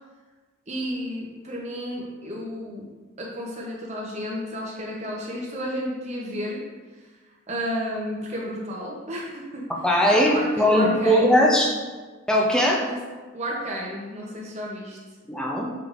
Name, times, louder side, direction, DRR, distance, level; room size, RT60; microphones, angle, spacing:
voice 1, 0.7-2.9 3.2-6.6 7.5-9.7 10.1-11.4 12.8-13.0 13.3-15.0, equal, 30° right, -3 dB, 0.7 m, -32 dB
voice 2, 9.8-11.7 12.3-12.8 15.3-15.7, equal, 5° left, -2 dB, 0.4 m, -19 dB
5.8 x 3.2 x 2.5 m, 1.3 s
head